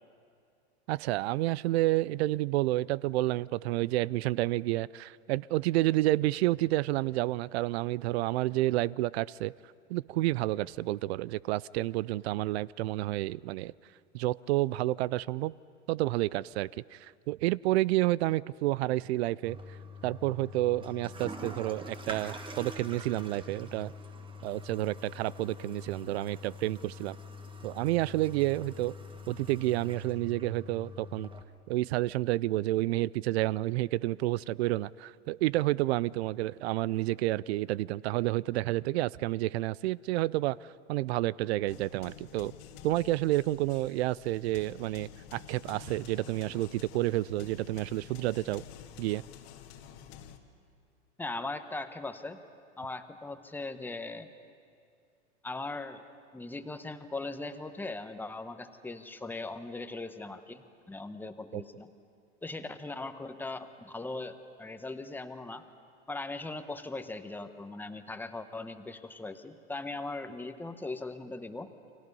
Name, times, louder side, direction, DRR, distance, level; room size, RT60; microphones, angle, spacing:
voice 1, 0.9-9.5 9.9-13.7 14.1-15.5 15.9-19.6 20.0-23.9 24.4-27.2 27.6-28.9 29.3-31.3 31.7-40.6 40.9-42.5 42.8-48.6 49.0-49.2 61.5-61.6, right 17 dB, 60° right, 0.5 m, -30 dB
Toilet flush, 19.4-31.4, left 2 dB, 15° right, 1.5 m, -45 dB
sound 1, 41.7-50.4, left 9 dB, 60° left, 2.0 m, -50 dB
voice 2, 51.2-52.4 52.8-54.3 55.4-56.0 56.3-61.9 62.4-65.6 66.1-71.7, left 2 dB, 5° left, 1.1 m, -39 dB
30.0 x 24.0 x 5.5 m
hypercardioid pair, 120°, 36 cm